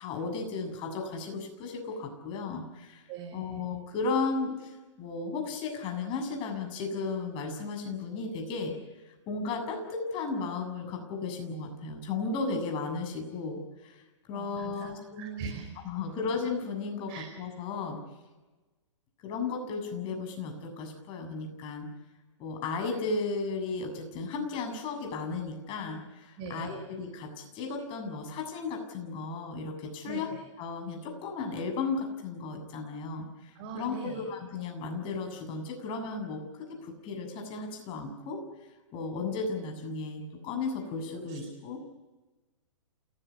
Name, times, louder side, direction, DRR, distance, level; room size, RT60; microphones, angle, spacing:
voice 1, 0.0-3.0 3.3-8.7 9.0-14.0 14.3-15.5 15.8-17.1 17.4-18.0 19.2-21.9 22.4-30.3 30.6-38.4 38.9-41.8, left 4 dB, 35° left, 4 dB, 7.2 m, -35 dB
voice 2, 3.1-3.6 14.3-14.9 15.2-15.7 17.1-17.3 26.4-26.8 30.1-30.4 33.5-34.3 41.1-41.3, right 5 dB, 40° right, 2 dB, 5.6 m, -41 dB
28.5 x 18.5 x 8.4 m, 1.2 s
hypercardioid pair, 130°, 16 cm